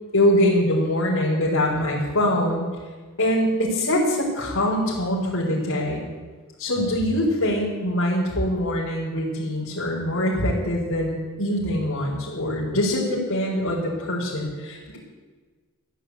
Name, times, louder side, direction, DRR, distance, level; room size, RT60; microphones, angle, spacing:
voice 1, 0.1-2.7 3.2-6.1 6.6-15.0, left 1 dB, 80° left, -7 dB, 4.5 m, -23 dB
15.0 x 11.0 x 8.3 m, 1.4 s
head